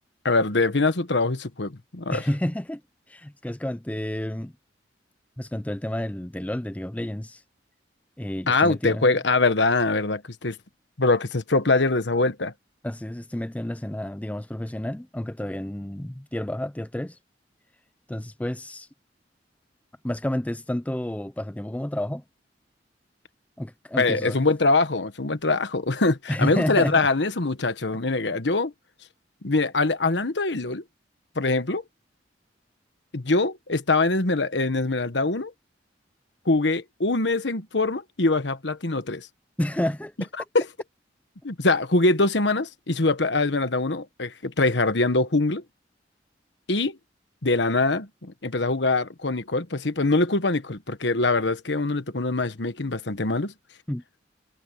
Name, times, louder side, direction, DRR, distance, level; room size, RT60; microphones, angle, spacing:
voice 1, 0.2-2.2 8.5-10.6 11.0-12.5 24.0-28.7 29.4-30.8 31.3-31.8 33.1-35.5 36.4-39.3 40.5-40.7 41.4-45.6 46.7-47.0 47.4-53.5, left 3 dB, 75° left, 1.3 m, -23 dB
voice 2, 2.1-2.8 3.1-4.5 5.4-7.4 8.2-9.2 12.8-17.2 18.1-18.9 20.0-22.2 23.6-24.5 26.3-27.1 39.6-40.3 53.9-54.0, left 1 dB, 10° left, 0.5 m, -30 dB
head